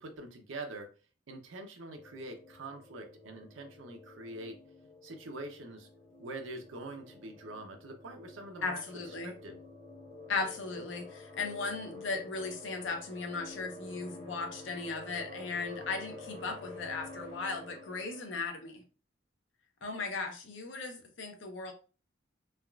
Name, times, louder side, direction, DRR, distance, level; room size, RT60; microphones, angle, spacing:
voice 1, 0.0-0.9 1.3-4.6 5.0-5.9 6.2-9.6, right 2 dB, 90° right, 4 dB, 0.6 m, -44 dB
sound 1, 2.0-18.5, left 2 dB, 35° left, 1.2 m, -49 dB
voice 2, 8.6-9.3 10.3-18.8 19.8-21.7, left 4 dB, 80° left, 4 dB, 0.7 m, -37 dB
3.4 x 2.3 x 2.3 m, 0.35 s
head